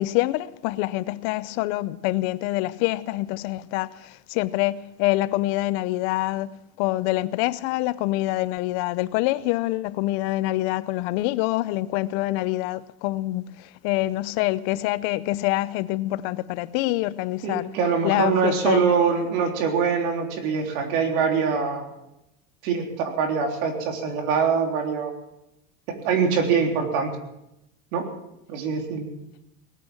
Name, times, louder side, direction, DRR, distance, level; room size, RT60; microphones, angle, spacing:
voice 1, 0.0-17.7 18.0-19.2, left 17 dB, 50° left, 0.6 m, -26 dB
voice 2, 17.4-21.9 22.6-25.1 25.9-27.1 27.9-28.1 28.5-29.1, right 6 dB, 70° right, 3.7 m, -24 dB
19.5 x 8.9 x 7.6 m
supercardioid pair, 140°, 44 cm